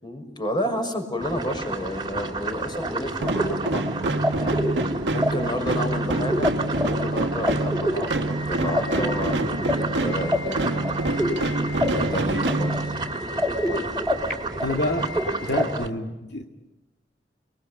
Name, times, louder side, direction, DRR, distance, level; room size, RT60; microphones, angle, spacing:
voice 1, 0.0-3.9 4.2-4.8 5.1-6.5 6.8-11.2 11.9-12.9, equal, 25° left, 5 dB, 6.1 m, -31 dB
sound 1, 1.2-15.9, right 3 dB, 25° right, 2.5 m, -32 dB
sound 2, 2.8-15.6, left 1 dB, 5° left, 4.8 m, -28 dB
sound 3, 3.2-13.3, right 2 dB, 85° right, 1.6 m, -27 dB
voice 2, 14.6-15.1 15.4-16.4, left 1 dB, 70° left, 3 dB, 2.2 m, -27 dB
30.0 x 21.0 x 8.6 m, 1.0 s
head